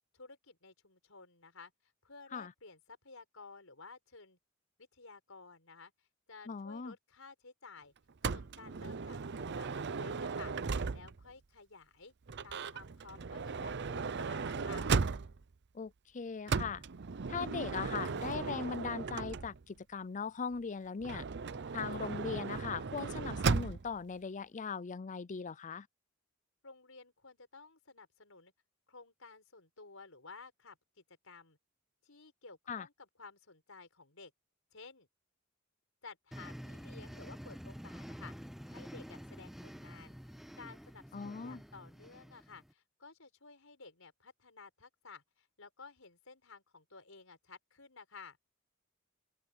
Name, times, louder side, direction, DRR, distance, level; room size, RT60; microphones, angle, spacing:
voice 1, 0.1-1.7 2.0-4.4 4.8-5.9 6.3-7.9 8.3-10.5 10.9-12.1 12.4-14.9 26.6-28.5 28.9-31.6 32.0-34.3 34.7-35.1 36.0-38.3 38.7-40.2 40.6-48.4, left 4 dB, 75° left, 5.3 m, -54 dB
voice 2, 6.5-6.9 15.7-16.8 17.3-21.2 21.7-25.9 32.7-32.9 41.1-41.6, left 5 dB, 35° left, 0.5 m, -39 dB
Motor vehicle (road) / Sliding door, 8.2-11.3 12.3-15.5 16.5-19.8 21.0-24.0, right 4 dB, 55° right, 0.6 m, -36 dB
sound 1, 36.3-42.7, equal, ahead, 0.7 m, -48 dB
open air
head